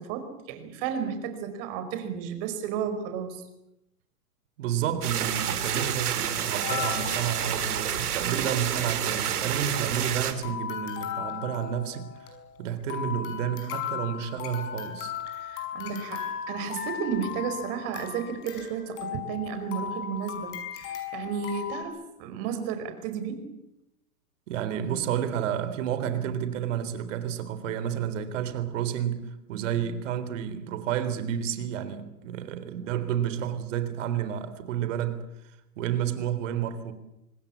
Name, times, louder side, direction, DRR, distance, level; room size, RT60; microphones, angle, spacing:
voice 1, 0.0-3.4 15.3-23.5 29.5-29.8, right 7 dB, 35° right, 5.1 m, -33 dB
voice 2, 4.6-12.3 12.6-15.1 24.5-35.2 35.8-36.9, right 9 dB, 50° right, 3.7 m, -30 dB
sound 1, 5.0-10.3, right 9 dB, 70° right, 4.2 m, -29 dB
sound 2, 6.4-8.1 8.4-8.5 8.6-8.9 9.4-10.1 10.4-21.8, left 9 dB, 30° left, 5.9 m, -37 dB
25.5 x 19.5 x 8.6 m
hypercardioid pair, 150°, 46 cm